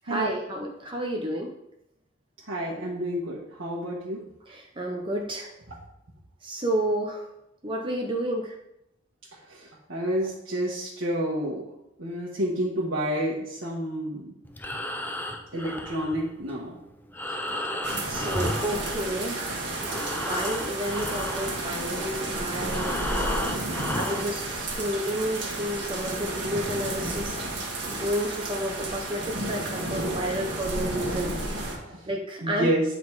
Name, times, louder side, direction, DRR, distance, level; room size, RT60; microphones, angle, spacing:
voice 1, 0.0-1.5 4.5-5.5 6.4-7.2 7.6-8.5 18.0-19.7 20.1-23.2 24.0-27.3 27.9-31.3 32.1-32.7, right 1 dB, 25° right, 0 dB, 0.7 m, -31 dB
voice 2, 2.4-4.2 9.5-11.6 12.0-14.3 15.5-16.8 31.7-32.0 32.4-32.8, right 1 dB, 80° right, -6 dB, 1.4 m, -29 dB
Breathing, 14.4-19.4 19.7-24.4, left 1 dB, 10° left, 0.5 m, -34 dB
sound 1, 17.8-31.7, right 2 dB, 60° right, 1.7 m, -32 dB
9.2 x 4.1 x 4.7 m, 0.85 s
head